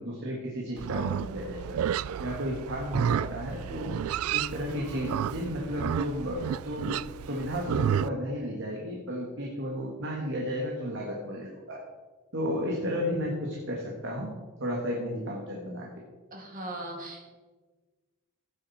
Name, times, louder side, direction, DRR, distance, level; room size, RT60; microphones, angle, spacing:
voice 1, 0.0-1.8 2.2-4.0 4.3-11.8 12.3-14.3 14.6-15.9, equal, 60° right, -2 dB, 2.1 m, -33 dB
Livestock farm animals working animals, 0.8-8.1, right 9 dB, 75° right, 0.3 m, -31 dB
voice 2, 16.3-17.3, right 1 dB, 40° right, 0 dB, 2.6 m, -39 dB
15.0 x 9.6 x 4.4 m, 1.3 s
head